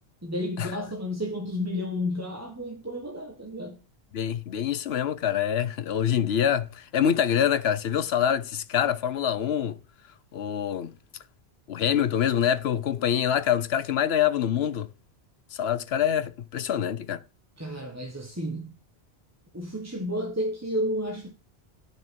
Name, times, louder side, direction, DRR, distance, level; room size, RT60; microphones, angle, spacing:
voice 1, 0.2-3.8 17.6-18.7 19.5-21.4, left 1 dB, 15° right, 1.3 m, -31 dB
voice 2, 4.1-9.8 10.3-10.9 11.7-14.9 15.5-17.2, left 9 dB, 70° left, 0.9 m, -25 dB
9.7 x 6.1 x 6.1 m
omnidirectional pair, 1.1 m